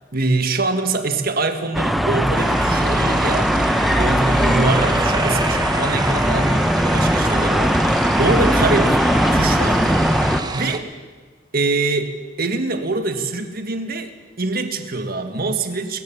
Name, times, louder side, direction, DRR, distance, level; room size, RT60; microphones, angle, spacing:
voice 1, 0.1-3.6 4.0-9.0 9.3-10.9 11.5-14.1 14.4-16.0, right 3 dB, 55° right, 7 dB, 1.9 m, -24 dB
sound 1, 1.7-10.4, equal, ahead, 1.0 m, -19 dB
sound 2, 2.3-10.8, right 3 dB, 20° right, 1.3 m, -28 dB
28.5 x 14.5 x 7.3 m, 1.4 s
head